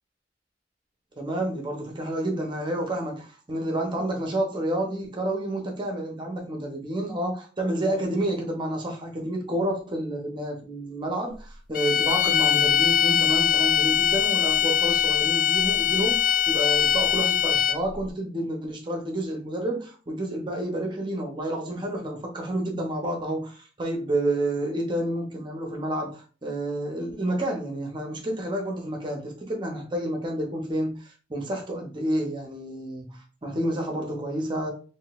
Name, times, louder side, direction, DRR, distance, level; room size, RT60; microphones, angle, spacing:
voice 1, 1.2-34.7, right 1 dB, 25° right, 0.7 m, -29 dB
sound 1, 11.7-18.0, left 10 dB, 50° left, 0.3 m, -22 dB
3.7 x 2.6 x 2.4 m
head